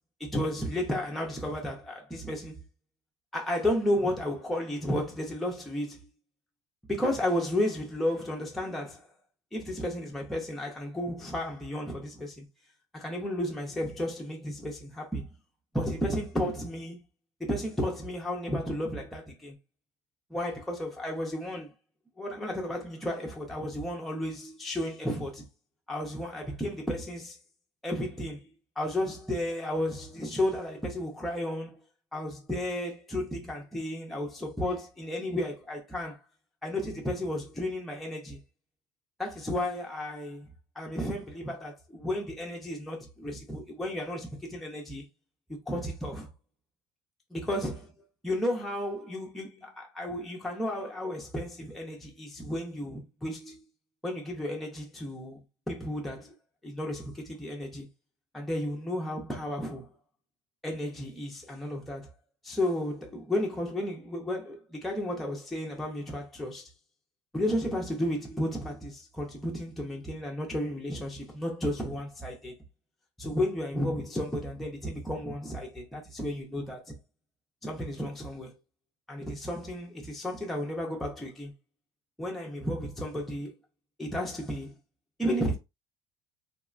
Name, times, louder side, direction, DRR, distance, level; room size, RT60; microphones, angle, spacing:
voice 1, 0.2-2.6 3.3-6.0 6.9-9.1 9.5-12.4 12.9-15.3 15.7-17.0 17.4-19.6 20.3-21.7 22.2-25.5 25.9-27.4 27.8-28.4 28.8-31.8 32.1-36.2 36.6-38.4 39.2-40.5 40.8-45.0 45.5-46.3 47.3-47.9 48.2-49.5 49.8-53.6 54.0-55.4 55.7-56.3 56.6-57.9 58.3-59.9 60.6-62.1 62.4-66.7 67.3-72.5 73.2-76.9 77.6-78.5 79.1-81.5 82.2-83.5 84.0-84.7 85.2-85.6, left 1 dB, ahead, 0.4 m, -33 dB
2.9 x 2.1 x 2.3 m
cardioid pair, 165°, 9 cm